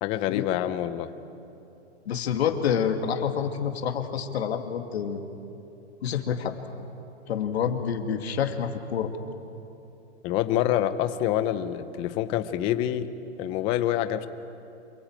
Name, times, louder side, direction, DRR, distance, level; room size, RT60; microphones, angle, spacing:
voice 1, 0.0-1.1 10.2-13.1 13.4-14.3, left 12 dB, 15° left, 12 dB, 0.6 m, -26 dB
voice 2, 2.1-5.2 6.0-6.6 7.3-9.1, left 7 dB, 60° left, 5 dB, 2.4 m, -28 dB
27.0 x 22.5 x 8.9 m, 2.8 s
hypercardioid pair, 160°, 35 cm